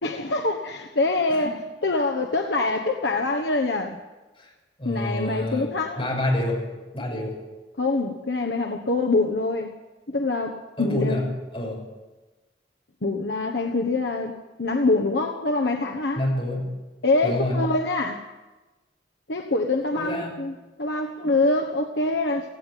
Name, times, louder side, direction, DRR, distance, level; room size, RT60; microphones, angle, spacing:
voice 1, 0.0-4.0 4.8-6.1 7.8-9.7 10.1-11.2 13.0-14.3 14.6-16.2 17.0-18.3 19.3-22.5, left 2 dB, 65° left, 3 dB, 1.2 m, -25 dB
voice 2, 4.8-5.7 6.0-6.6 6.9-7.3 10.8-11.2 11.5-11.8 16.1-16.7 17.2-17.5 20.0-20.3, left 1 dB, 30° left, -1 dB, 6.5 m, -27 dB
17.5 x 16.0 x 9.2 m, 1.2 s
head